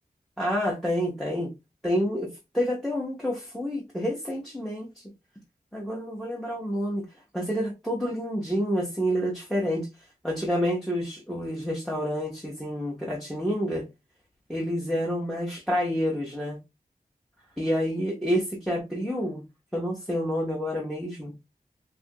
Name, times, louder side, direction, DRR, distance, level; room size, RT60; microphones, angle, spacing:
voice 1, 0.4-1.5 1.8-5.0 5.7-7.1 7.3-9.9 10.2-13.9 14.5-16.6 17.6-19.4 19.7-21.3, equal, ahead, 0.7 m, -28 dB
3.0 x 2.4 x 2.6 m
wide cardioid pair, 85°, 16 cm